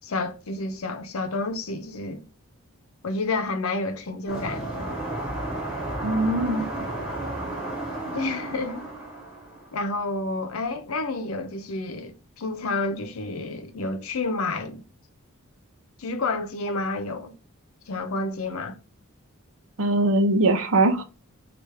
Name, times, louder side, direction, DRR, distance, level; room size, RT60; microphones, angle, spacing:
voice 1, 0.0-2.2 3.0-4.9 8.1-8.8 9.7-14.8 16.0-17.3 17.9-18.8, left 3 dB, 75° left, 0.7 m, -30 dB
sound 1, 4.3-9.8, right 1 dB, 5° right, 1.9 m, -32 dB
voice 2, 6.0-6.6 19.8-21.0, right 2 dB, 80° right, 0.7 m, -21 dB
4.8 x 2.5 x 3.3 m
head